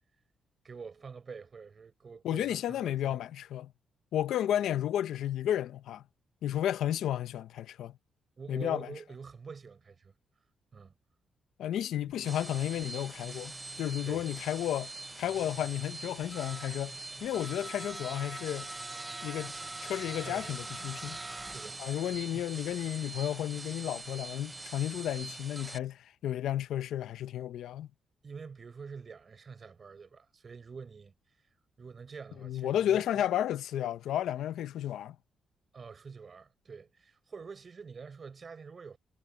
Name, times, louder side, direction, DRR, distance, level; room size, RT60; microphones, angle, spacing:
voice 1, 0.6-3.2 8.4-10.1 10.7-10.9 14.0-14.3 20.2-20.6 21.4-21.8 22.3-22.5 28.2-31.1 31.8-33.1 35.7-39.0, right 5 dB, 30° right, 6.2 m, -46 dB
voice 2, 2.2-3.7 4.1-6.0 6.4-7.9 8.5-8.9 11.6-14.9 15.2-18.7 19.2-19.5 19.8-21.2 21.8-27.9 32.4-35.2, left 11 dB, 85° left, 0.7 m, -32 dB
sound 1, 12.1-25.8, right 2 dB, 15° right, 0.5 m, -43 dB
wide cardioid pair, 175°, 0 cm